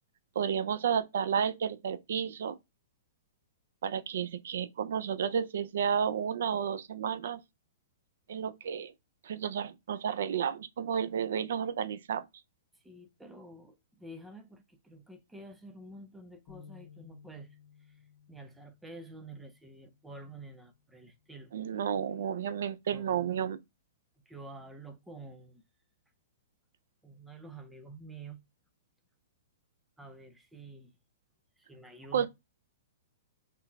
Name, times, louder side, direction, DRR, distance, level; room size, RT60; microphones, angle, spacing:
voice 1, 0.4-2.6 3.8-7.4 8.3-8.9 9.2-12.3 21.5-23.6 32.1-32.3, right 8 dB, 65° right, 0.4 m, -31 dB
voice 2, 12.7-18.0 18.3-21.5 22.9-23.5 24.3-25.6 27.0-28.4 30.0-30.9 31.6-32.3, right 2 dB, 5° right, 0.4 m, -49 dB
sound 1, 16.5-22.7, left 7 dB, 35° left, 1.3 m, -59 dB
3.6 x 2.7 x 2.3 m
hypercardioid pair, 165°, 0 cm